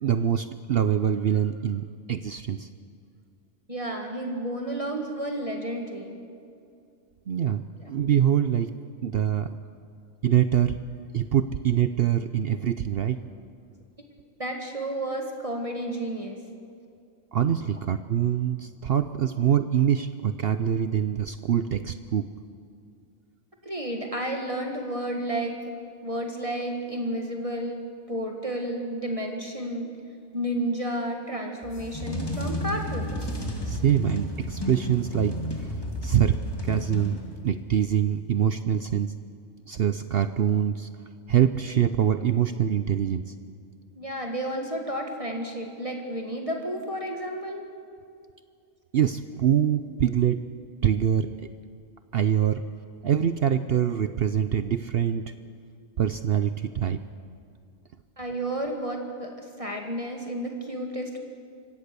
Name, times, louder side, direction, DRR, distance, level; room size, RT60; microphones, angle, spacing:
voice 1, 0.0-2.7 7.3-7.6 7.9-8.8 9.0-9.5 10.2-10.8 11.1-13.2 17.3-22.3 33.7-39.1 39.7-40.9 41.3-43.3 48.9-50.4 50.8-51.5 52.1-52.6 53.0-55.3 56.0-57.0, right 9 dB, 55° right, 11 dB, 0.7 m, -24 dB
voice 2, 3.7-6.1 7.8-7.9 14.4-16.4 23.6-25.7 26.0-30.0 30.3-33.3 44.0-47.6 58.2-61.2, right 1 dB, 25° right, 2 dB, 1.9 m, -31 dB
sound 1, 31.6-37.6, left 1 dB, 20° left, 2.2 m, -32 dB
25.0 x 16.5 x 6.8 m, 2.4 s
omnidirectional pair, 1.4 m